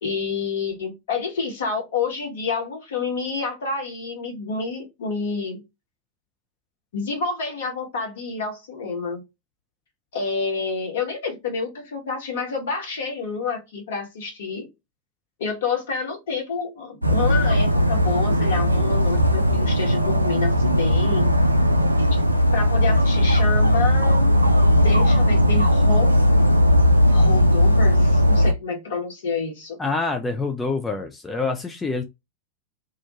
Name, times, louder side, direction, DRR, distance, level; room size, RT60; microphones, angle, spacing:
voice 1, 0.0-5.6 6.9-9.2 10.1-14.7 15.4-21.3 22.1-22.2 22.5-24.3 24.8-26.2 27.1-29.8, left 4 dB, 60° left, 1.1 m, -28 dB
Dog, 17.0-28.5, equal, 90° right, 0.3 m, -18 dB
voice 2, 29.8-32.0, left 3 dB, 15° left, 0.4 m, -26 dB
2.4 x 2.2 x 2.8 m
figure-of-eight pair, 90°, 0 cm